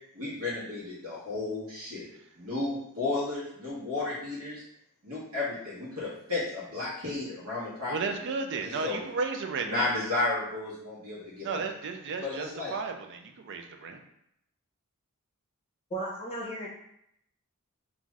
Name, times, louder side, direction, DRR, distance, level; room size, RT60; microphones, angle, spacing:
voice 1, 0.1-2.1 2.3-4.6 5.0-7.9 8.6-9.0 9.6-11.6 12.2-12.7, left 2 dB, 75° right, -8 dB, 1.1 m, -33 dB
voice 2, 7.9-9.9 11.4-14.0, right 4 dB, 55° right, 5 dB, 0.4 m, -34 dB
voice 3, 15.9-16.7, right 2 dB, 25° left, -3 dB, 0.6 m, -35 dB
2.5 x 2.3 x 3.2 m, 0.77 s
head